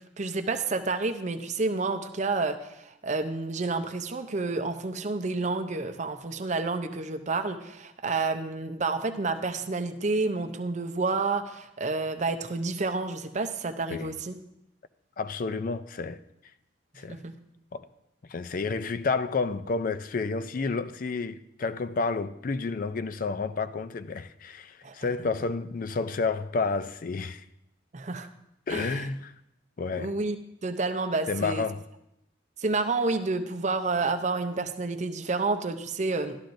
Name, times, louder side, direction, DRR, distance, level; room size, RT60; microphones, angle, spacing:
voice 1, 0.2-14.4 17.1-17.3 24.8-24.9 27.9-28.3 28.7-29.1 29.9-30.4 30.6-31.6 32.6-36.4, right 3 dB, 40° right, 0.6 m, -29 dB
voice 2, 15.2-16.2 17.0-17.2 17.7-17.9 18.3-27.4 28.7-29.3 29.8-30.1 31.3-31.8, left 4 dB, 45° left, 0.4 m, -30 dB
13.5 x 11.5 x 2.6 m
head